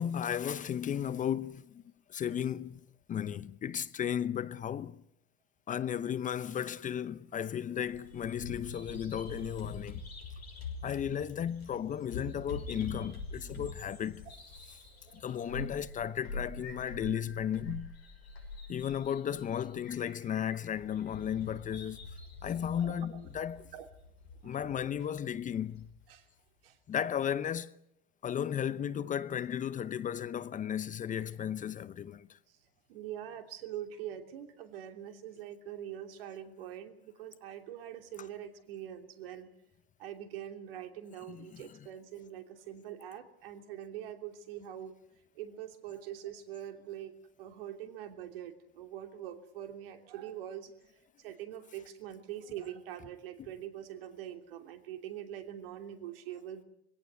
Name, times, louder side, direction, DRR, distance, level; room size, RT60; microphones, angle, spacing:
voice 1, 0.0-1.8 2.1-2.8 3.1-5.0 5.7-10.0 10.8-14.3 15.1-17.9 18.7-22.0 22.4-23.6 24.4-25.9 26.9-27.7 28.2-32.3 41.3-41.6, left 9 dB, 25° left, 0.8 m, -34 dB
Bird vocalization bird call bird song, 7.8-25.9, left 3 dB, 85° left, 6.1 m, -45 dB
voice 2, 22.8-23.3 23.7-23.9 24.4-24.6 26.1-26.2 26.6-26.8 32.9-39.5 40.0-44.9 45.3-50.7 51.2-56.6, right 10 dB, 70° right, 3.1 m, -44 dB
23.5 x 17.0 x 9.6 m
hypercardioid pair, 95°, 30 cm